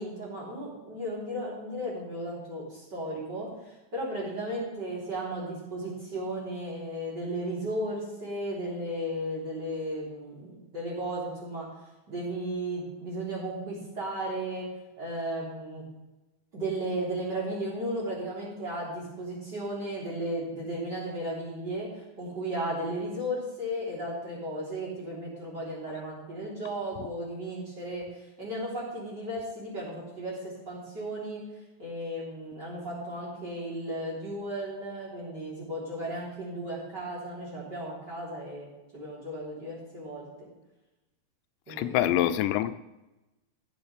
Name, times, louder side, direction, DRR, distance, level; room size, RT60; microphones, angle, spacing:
voice 1, 0.0-11.7 12.1-14.7 15.0-15.8 16.5-28.1 28.4-31.5 31.8-38.7 38.9-40.5 41.7-42.2, right 1 dB, 25° right, -5 dB, 3.6 m, -35 dB
voice 2, 41.7-42.8, left 12 dB, 90° left, 11 dB, 2.9 m, -25 dB
15.5 x 7.9 x 3.4 m, 1.0 s
omnidirectional pair, 5.1 m